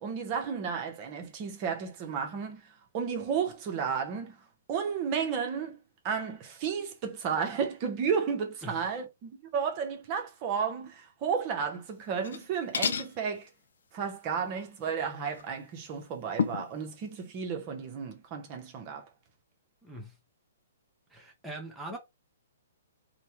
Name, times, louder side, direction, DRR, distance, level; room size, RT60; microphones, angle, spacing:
voice 1, 0.0-2.6 2.9-4.4 4.7-5.8 6.0-13.5 13.9-19.1, right 6 dB, 35° right, 0.8 m, -33 dB
sound 1, 12.1-12.5 12.7-13.1 15.3-15.4 16.4-16.7, left 6 dB, 70° left, 0.4 m, -30 dB
voice 2, 19.8-20.2 21.1-22.0, right 1 dB, 5° right, 0.7 m, -42 dB
3.0 x 2.2 x 2.8 m
hypercardioid pair, 125°, 0 cm